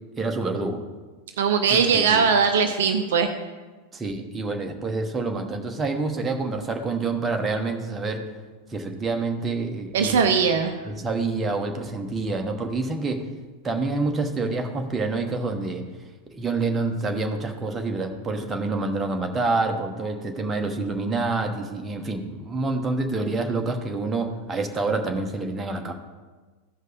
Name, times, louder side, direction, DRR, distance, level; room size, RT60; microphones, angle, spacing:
voice 1, 0.2-0.8 1.7-2.3 3.9-8.2 8.7-10.2 10.9-13.2 13.6-15.8 16.3-25.9, right 3 dB, 15° right, 3 dB, 1.1 m, -27 dB
voice 2, 1.4-3.3 9.9-10.7, right 6 dB, 60° right, 6 dB, 0.6 m, -20 dB
15.0 x 5.3 x 3.9 m, 1.3 s
figure-of-eight pair, 90°, 0 cm